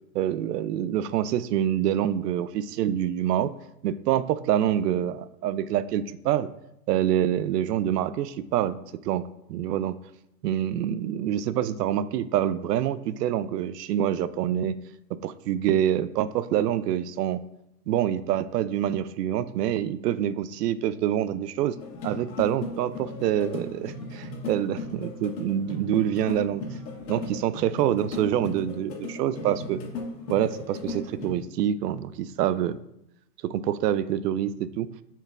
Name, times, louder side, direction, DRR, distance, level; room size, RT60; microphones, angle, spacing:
voice 1, 0.1-3.5 3.8-6.5 6.9-8.8 9.0-9.9 10.4-14.8 15.2-17.4 17.9-21.8 22.0-26.6 27.1-29.8 30.3-32.8 33.4-34.9, right 11 dB, 75° right, 15 dB, 0.5 m, -26 dB
sound 1, 21.7-31.3, left 2 dB, 85° left, 1.9 m, -37 dB
7.0 x 5.8 x 2.4 m, 0.82 s
hypercardioid pair, 140°, 49 cm